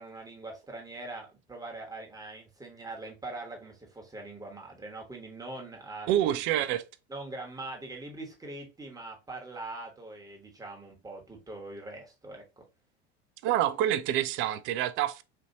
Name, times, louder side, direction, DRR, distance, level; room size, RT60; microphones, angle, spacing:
voice 1, 0.0-6.4 7.1-12.4, right 2 dB, 10° right, 1.2 m, -42 dB
voice 2, 6.1-6.8 13.4-15.2, right 12 dB, 35° right, 0.4 m, -27 dB
4.3 x 2.7 x 2.7 m
figure-of-eight pair, 80°, 33 cm